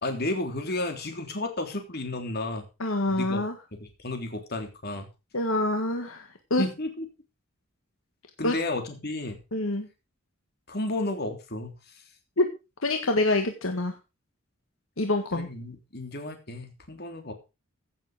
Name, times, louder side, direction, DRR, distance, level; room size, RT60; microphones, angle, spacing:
voice 1, 0.0-2.6 3.1-3.4 3.7-5.1 6.6-7.1 8.4-9.4 10.7-11.7 15.3-17.3, left 2 dB, 50° left, 5 dB, 3.4 m, -32 dB
voice 2, 2.8-3.6 5.3-6.6 8.4-8.6 9.5-9.9 12.4-12.5 12.8-14.0 15.0-15.5, left 2 dB, 75° left, 5 dB, 1.7 m, -26 dB
16.0 x 7.6 x 5.0 m, 0.30 s
head